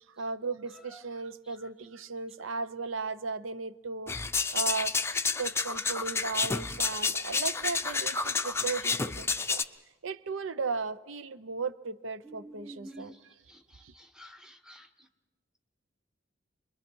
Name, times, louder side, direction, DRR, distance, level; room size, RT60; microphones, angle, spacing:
voice 1, 0.2-4.2 4.5-4.9 5.4-9.6 10.0-13.3 13.8-13.9, right 4 dB, 90° right, 0.7 m, -36 dB
sound 1, 4.1-9.6, left 4 dB, 15° left, 0.6 m, -30 dB
voice 2, 12.2-13.2 13.5-13.6 13.9-14.9, right 1 dB, 5° right, 1.2 m, -48 dB
29.0 x 22.5 x 4.6 m
head